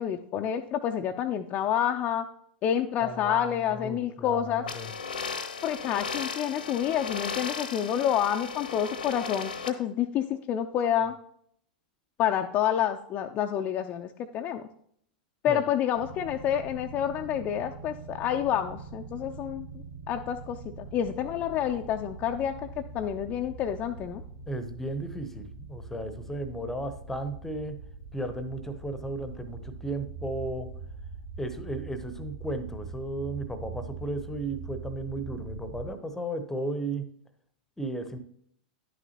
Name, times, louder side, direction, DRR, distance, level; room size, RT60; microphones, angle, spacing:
voice 1, 0.0-2.3 2.6-4.6 5.6-11.2 12.2-14.7 15.4-22.6 22.9-24.2, left 10 dB, 30° left, 5 dB, 0.4 m, -28 dB
voice 2, 3.0-4.9 15.5-15.6 24.5-27.8 28.1-30.7 31.4-37.1 37.8-38.2, right 1 dB, 5° left, 10 dB, 0.7 m, -35 dB
sound 1, 4.7-9.7, left 5 dB, 70° left, 0.8 m, -36 dB
sound 2, 15.9-35.9, right 4 dB, 45° right, 1.5 m, -43 dB
10.5 x 6.1 x 2.9 m, 0.66 s
figure-of-eight pair, 95°, 5 cm